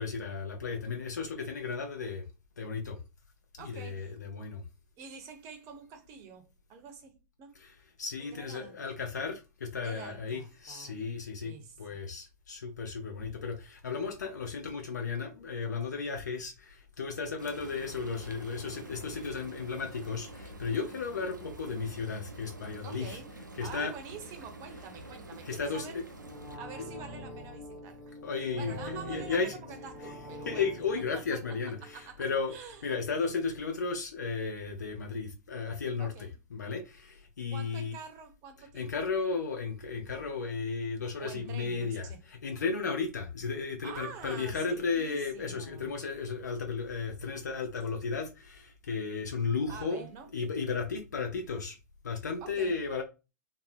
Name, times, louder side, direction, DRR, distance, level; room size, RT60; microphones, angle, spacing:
voice 1, 0.0-2.3 2.6-3.0 3.6-4.6 7.6-7.7 8.0-11.5 11.8-23.2 23.6-23.9 25.5-26.0 26.8-26.9 28.2-29.5 30.5-32.5 32.8-36.1 36.5-37.9 38.7-51.8 52.0-53.0, left 5 dB, 70° left, 0.5 m, -34 dB
voice 2, 3.6-4.1 5.0-7.6 8.2-8.8 9.8-11.0 11.4-12.0 22.8-23.3 23.6-26.0 26.6-28.2 28.5-30.6 31.1-32.9 36.0-36.3 37.5-38.9 41.2-42.2 43.8-45.9 49.7-50.3 52.4-52.8, right 6 dB, 30° right, 0.6 m, -47 dB
Frying (food), 17.4-26.6, right 1 dB, 90° right, 0.4 m, -47 dB
sound 1, 26.1-33.0 33.3-33.4, equal, 15° left, 0.8 m, -45 dB
2.6 x 2.0 x 2.4 m
figure-of-eight pair, 105°, 10 cm